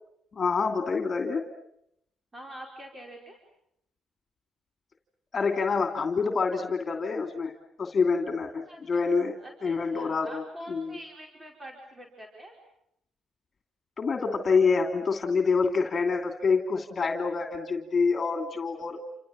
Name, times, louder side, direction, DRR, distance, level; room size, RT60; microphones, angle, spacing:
voice 1, 0.4-1.5 5.3-9.3 9.6-10.4 10.7-10.9 14.0-19.0, left 4 dB, 40° left, 5 dB, 2.7 m, -26 dB
voice 2, 2.3-3.4 8.7-9.1 9.4-12.5, equal, 20° right, 1 dB, 5.0 m, -45 dB
28.5 x 27.5 x 7.5 m, 0.77 s
cardioid pair, 90°, 0 cm